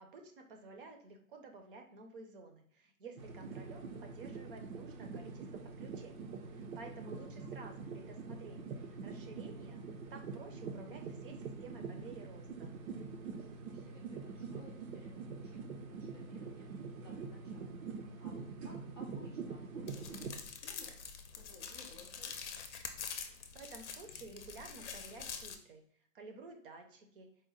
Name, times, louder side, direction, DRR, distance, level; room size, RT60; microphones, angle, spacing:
voice 1, 0.0-9.8 10.1-12.7 23.5-25.8 26.1-27.3, right 3 dB, 40° right, 4 dB, 0.6 m, -52 dB
sound 1, 3.2-20.4, right 4 dB, 75° right, 0.7 m, -45 dB
voice 2, 7.0-7.8 13.3-22.4, left 2 dB, 20° left, -7 dB, 0.3 m, -59 dB
sound 2, 19.9-25.5, left 6 dB, 55° left, 0.6 m, -46 dB
4.2 x 2.2 x 3.7 m, 0.64 s
hypercardioid pair, 145°, 42 cm